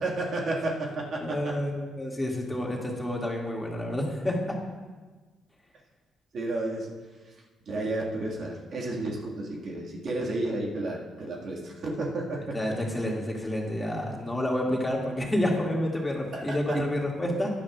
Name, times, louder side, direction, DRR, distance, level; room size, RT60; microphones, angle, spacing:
voice 1, 0.0-1.5 6.3-6.9 7.7-12.6 16.3-16.8, right 2 dB, 60° right, -2 dB, 1.8 m, -32 dB
voice 2, 1.2-4.5 12.5-17.5, left 1 dB, 15° left, -2 dB, 2.2 m, -29 dB
15.5 x 10.5 x 2.4 m, 1.3 s
cardioid pair, 90°, 0 cm